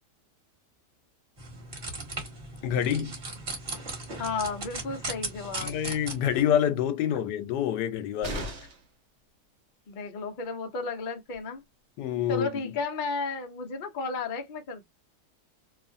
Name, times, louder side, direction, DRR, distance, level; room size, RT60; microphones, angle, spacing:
sound 1, 1.4-6.4, right 2 dB, 35° right, 1.3 m, -38 dB
voice 1, 2.6-3.2 5.6-8.5 12.0-12.5, left 9 dB, 85° left, 1.2 m, -27 dB
voice 2, 4.2-5.8 9.9-11.6 12.3-14.9, left 4 dB, 65° left, 0.4 m, -33 dB
sound 2, 8.2-9.0 10.9-11.0 11.3-11.4, right 2 dB, 55° right, 0.8 m, -37 dB
3.0 x 2.4 x 2.5 m
omnidirectional pair, 1.8 m